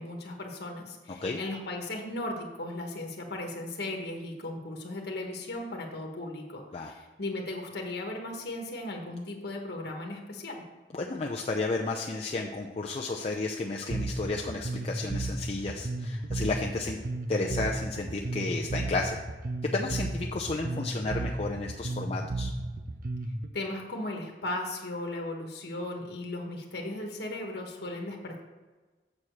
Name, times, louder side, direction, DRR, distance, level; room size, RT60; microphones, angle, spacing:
voice 1, 0.0-10.6 23.5-28.4, left 2 dB, 65° left, 1 dB, 1.2 m, -37 dB
voice 2, 10.9-17.0 17.3-19.2 19.7-22.5, left 3 dB, 35° left, 0 dB, 0.5 m, -32 dB
Bass guitar, 13.9-23.5, right 2 dB, 50° right, 0.6 m, -34 dB
7.2 x 4.7 x 6.5 m, 1.3 s
head